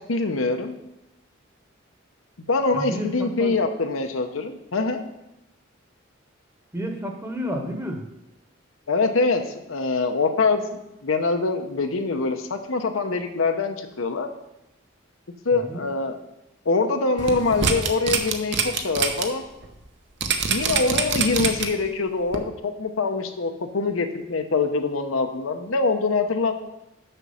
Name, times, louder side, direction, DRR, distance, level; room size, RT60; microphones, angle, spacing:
voice 1, 0.1-0.8 2.5-5.0 8.9-10.6 11.0-14.3 15.4-16.2 16.6-19.4 20.5-26.5, left 3 dB, 80° left, 6 dB, 0.8 m, -24 dB
voice 2, 2.7-3.6 6.7-8.0 15.5-15.9, equal, 15° right, 3 dB, 1.0 m, -31 dB
sound 1, 17.2-19.2 19.6-19.7 20.2-21.9 22.3-22.4, right 6 dB, 60° right, 0.8 m, -24 dB
6.7 x 6.2 x 5.5 m, 0.91 s
head